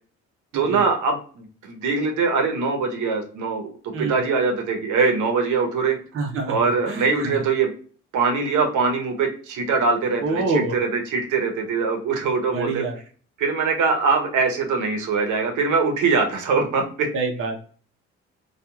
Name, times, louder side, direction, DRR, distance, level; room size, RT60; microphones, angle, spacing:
voice 1, 0.5-3.7 4.0-6.0 6.5-7.7 8.1-12.8 13.4-17.1, right 4 dB, 80° right, 3 dB, 0.8 m, -22 dB
voice 2, 6.1-6.6 6.9-7.3 10.2-10.7 12.5-13.0 17.1-17.6, right 3 dB, 45° right, 1 dB, 0.7 m, -26 dB
2.9 x 2.3 x 2.2 m, 0.42 s
cardioid pair, 90°, 30 cm